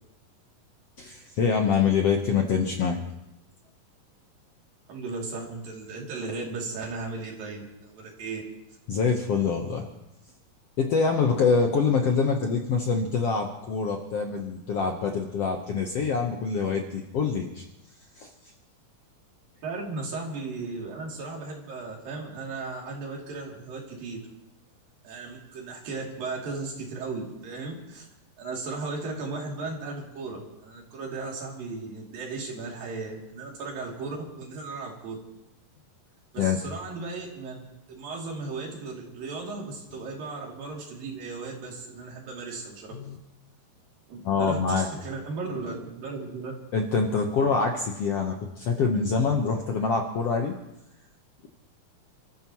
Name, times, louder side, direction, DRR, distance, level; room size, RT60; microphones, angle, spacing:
voice 1, 1.0-3.0 8.9-9.9 10.8-17.6 18.2-18.3 36.4-36.6 42.9-43.2 44.2-44.9 46.7-50.5, left 5 dB, 65° left, 2 dB, 1.6 m, -25 dB
voice 2, 4.9-8.4 19.6-24.2 25.0-28.0 28.4-35.2 36.3-42.9 44.1-46.5, right 3 dB, 75° right, -2 dB, 4.6 m, -36 dB
29.0 x 14.0 x 3.0 m, 0.87 s
omnidirectional pair, 4.1 m